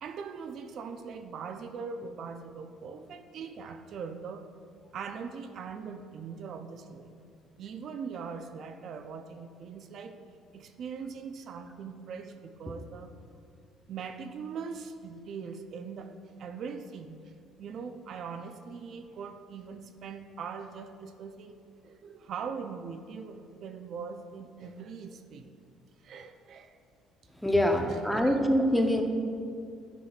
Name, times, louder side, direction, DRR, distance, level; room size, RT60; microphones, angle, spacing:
voice 1, 0.0-4.5 4.9-7.2 7.6-10.2 10.5-13.1 13.9-16.1 16.4-17.2 17.6-25.5 26.0-26.8 27.9-28.4, right 5 dB, 60° right, 7 dB, 0.4 m, -41 dB
voice 2, 27.4-29.0, equal, ahead, 3 dB, 0.7 m, -24 dB
10.5 x 5.9 x 2.4 m, 2.4 s
cardioid pair, 90°, 0 cm